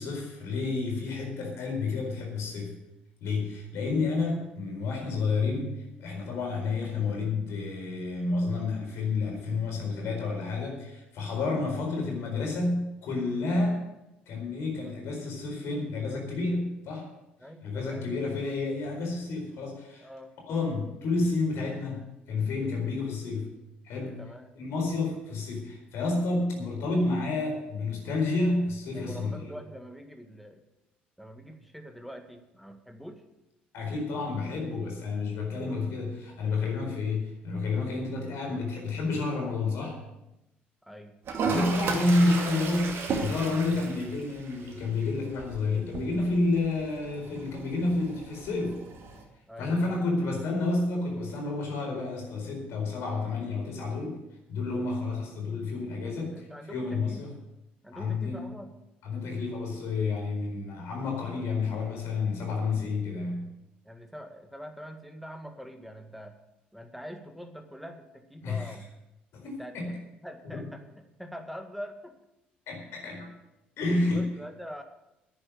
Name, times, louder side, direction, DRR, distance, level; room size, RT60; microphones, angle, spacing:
voice 1, 0.0-2.8 3.2-13.8 14.3-17.1 17.6-20.1 20.5-23.5 23.8-24.2 24.6-29.5 33.7-40.0 41.4-48.8 49.6-54.2 54.5-57.3 57.9-58.4 59.0-63.5 68.4-68.7 69.3-69.9 70.4-70.7 72.7-73.3 73.8-74.3, left 3 dB, 55° left, 2 dB, 4.4 m, -30 dB
voice 2, 17.4-18.1 20.0-20.3 24.2-24.5 28.9-30.6 31.2-33.2 40.8-41.2 49.5-50.0 54.9-55.1 56.2-57.2 57.8-58.7 63.8-66.4 66.7-68.9 69.4-70.8 71.2-72.2 73.0-73.1 74.1-74.8, equal, ahead, 5 dB, 1.9 m, -44 dB
Toilet flush, 41.2-49.2, right 4 dB, 50° right, 2.4 m, -35 dB
10.5 x 10.0 x 7.8 m, 0.90 s
figure-of-eight pair, 50°, 5 cm